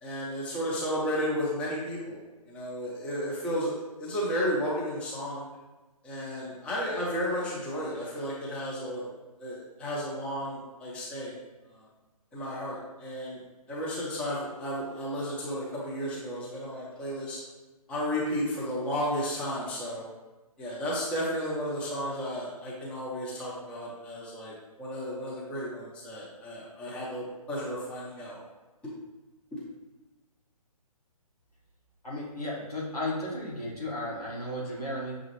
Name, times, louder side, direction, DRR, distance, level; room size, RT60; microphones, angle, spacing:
voice 1, 0.0-5.4 6.0-9.1 9.4-11.3 11.7-11.9 12.3-13.4 13.7-17.4 17.9-20.0 20.6-24.5 24.8-28.4 29.5-29.6, equal, 5° left, -7 dB, 0.6 m, -33 dB
voice 2, 32.0-35.2, left 1 dB, 85° left, -4 dB, 1.5 m, -34 dB
6.2 x 2.4 x 3.1 m, 1.1 s
figure-of-eight pair, 135°, 19 cm